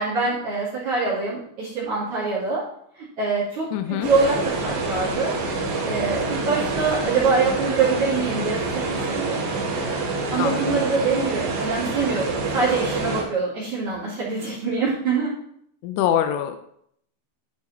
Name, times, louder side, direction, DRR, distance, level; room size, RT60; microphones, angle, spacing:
voice 1, 0.0-2.6 2.9-5.4 5.9-9.4 10.3-15.3, right 4 dB, 45° right, -9 dB, 3.3 m, -24 dB
voice 2, 3.7-4.1 10.4-10.8 15.8-16.6, left 10 dB, 85° left, 8 dB, 3.0 m, -24 dB
sound 1, 4.0-13.2, right 3 dB, 70° right, 4.0 m, -27 dB
12.0 x 4.8 x 4.2 m, 0.69 s
omnidirectional pair, 5.3 m